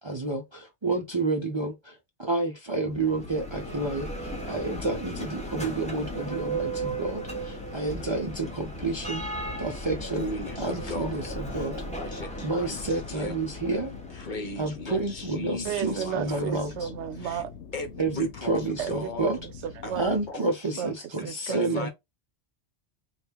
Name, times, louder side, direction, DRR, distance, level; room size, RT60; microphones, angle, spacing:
voice 1, 0.0-9.2 9.6-10.2 10.6-11.8 12.4-13.9 14.6-16.9 18.0-19.4 20.0-21.9, right 3 dB, 35° right, 0.5 m, -30 dB
sound 1, 2.9-20.3, left 7 dB, 85° left, 1.0 m, -45 dB
Bell, 2.9-14.7, right 2 dB, 5° left, 0.8 m, -36 dB
voice 2, 10.2-11.2 11.5-13.3 13.7-16.7 17.2-17.4 17.7-19.3 19.8-20.0 20.3-20.9 21.2-21.9, left 2 dB, 45° left, 1.0 m, -38 dB
voice 3, 15.6-17.5 18.8-20.5 20.8-21.9, right 9 dB, 85° right, 0.9 m, -34 dB
3.4 x 2.4 x 4.3 m
omnidirectional pair, 1.2 m